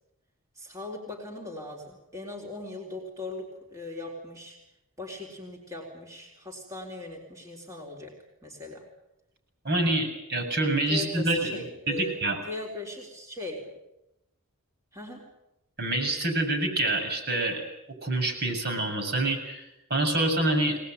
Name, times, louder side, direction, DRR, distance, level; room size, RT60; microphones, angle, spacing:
voice 1, 0.6-4.6 5.0-8.1 8.4-8.9 10.9-12.2 12.5-13.6 14.9-15.3, left 2 dB, 15° right, -2 dB, 3.9 m, -39 dB
voice 2, 9.6-12.4 15.8-17.6 18.0-20.8, right 2 dB, 50° right, 3 dB, 6.6 m, -27 dB
23.5 x 19.5 x 9.2 m, 0.90 s
head